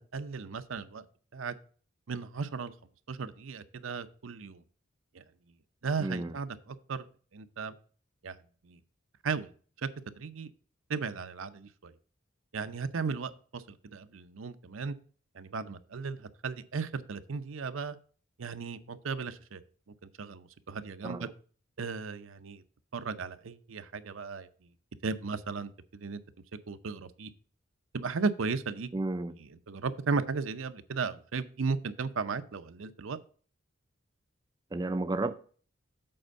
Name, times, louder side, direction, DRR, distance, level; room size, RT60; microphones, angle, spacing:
voice 1, 0.1-1.0 1.3-1.5 2.1-2.7 3.1-4.6 5.1-5.2 5.8-7.1 7.3-7.7 8.2-8.4 8.6-8.8 9.2-9.5 9.8-9.9 10.2-10.5 10.9-11.9 12.5-15.0 15.3-18.0 18.4-19.6 20.2-21.3 21.8-22.6 22.9-24.5 25.0-26.2 26.7-27.3 27.9-28.9 29.7-33.2, right 5 dB, 80° right, 0.6 m, -35 dB
voice 2, 6.0-6.3 21.0-21.3 28.9-29.4 34.7-35.4, right 2 dB, 20° right, 0.3 m, -32 dB
7.8 x 4.4 x 6.5 m
head